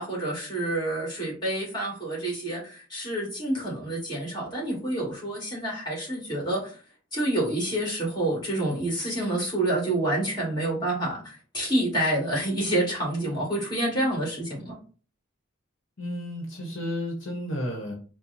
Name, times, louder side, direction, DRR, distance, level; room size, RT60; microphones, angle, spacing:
voice 1, 0.0-6.8 7.1-14.8, right 1 dB, 20° left, -3 dB, 2.1 m, -28 dB
voice 2, 16.0-17.9, left 1 dB, 60° left, 0 dB, 1.2 m, -32 dB
4.5 x 2.3 x 4.2 m, 0.38 s
head